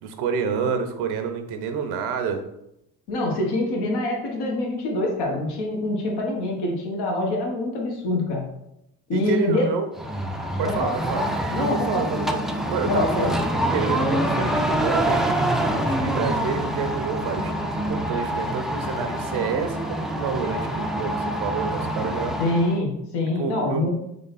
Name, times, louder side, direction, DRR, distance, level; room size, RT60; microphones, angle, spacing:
voice 1, 0.0-2.4 9.1-9.9 10.6-11.3 11.5-15.3 15.7-22.4 23.4-23.9, right 6 dB, 70° right, 7 dB, 0.8 m, -28 dB
voice 2, 3.1-8.5 9.1-9.6 10.6-10.9 11.2-12.1 12.9-13.3 22.4-23.9, left 2 dB, 70° left, -1 dB, 1.3 m, -25 dB
sound 1, 9.9-22.8, right 1 dB, ahead, 0.5 m, -26 dB
3.8 x 3.3 x 4.0 m, 0.83 s
hypercardioid pair, 60°, 41 cm